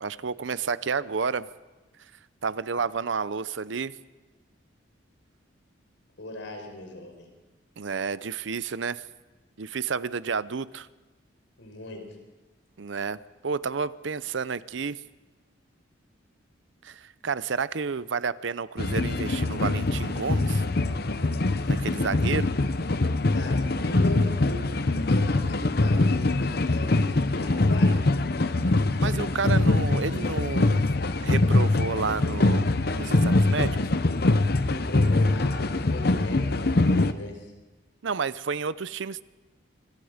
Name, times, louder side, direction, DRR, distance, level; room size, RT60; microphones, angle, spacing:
voice 1, 0.0-1.5 2.4-3.9 7.8-9.0 9.6-10.9 12.8-13.2 13.4-15.0 16.8-20.6 21.7-22.5 29.0-30.9 31.2-32.7 32.9-33.8 38.0-39.2, right 5 dB, 70° right, 17 dB, 0.6 m, -30 dB
voice 2, 6.2-7.3 11.6-12.1 23.3-24.7 25.1-28.1 34.7-37.5, left 2 dB, 70° left, 3 dB, 4.8 m, -38 dB
sound 1, 18.8-37.1, left 2 dB, 50° left, 0.8 m, -23 dB
26.5 x 21.5 x 5.1 m, 1.2 s
head